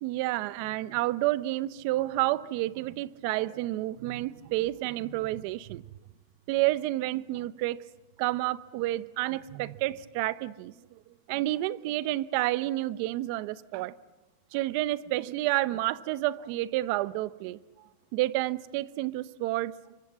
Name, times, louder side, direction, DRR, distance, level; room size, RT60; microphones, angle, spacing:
voice 1, 0.0-5.8 6.5-7.8 8.2-11.0 11.3-13.9 14.5-17.6 18.1-19.7, right 17 dB, 50° right, 0.8 m, -30 dB
26.5 x 24.5 x 7.5 m
supercardioid pair, 160°, 0 cm